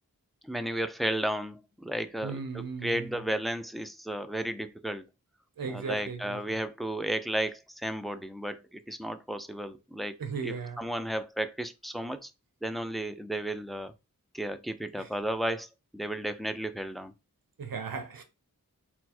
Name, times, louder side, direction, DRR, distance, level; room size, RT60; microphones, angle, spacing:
voice 1, 0.4-5.0 5.7-10.1 10.4-12.3 12.6-13.9 14.3-15.7 15.9-17.1, right 1 dB, ahead, 0.4 m, -33 dB
voice 2, 2.2-3.1 5.6-6.4 10.2-10.8 15.0-15.1 17.6-18.2, right 5 dB, 85° right, 0.7 m, -36 dB
4.4 x 2.0 x 4.2 m
wide cardioid pair, 50°, 34 cm